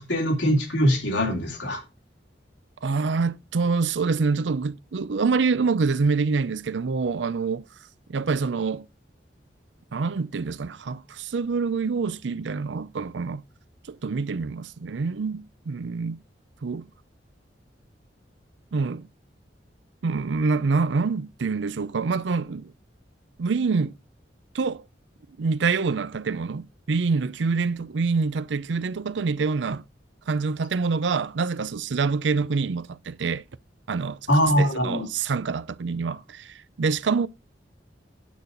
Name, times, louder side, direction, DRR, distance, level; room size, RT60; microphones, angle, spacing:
voice 1, 0.0-1.8 34.3-35.1, equal, 85° left, 2.9 m, -22 dB
voice 2, 2.8-7.7 8.1-8.9 9.9-13.4 13.9-16.2 16.6-16.9 18.7-19.1 20.0-22.7 23.4-23.9 24.5-24.8 25.4-29.8 30.3-33.4 33.9-34.2 34.6-37.3, right 4 dB, 85° right, 0.5 m, -26 dB
9.3 x 8.2 x 3.9 m
head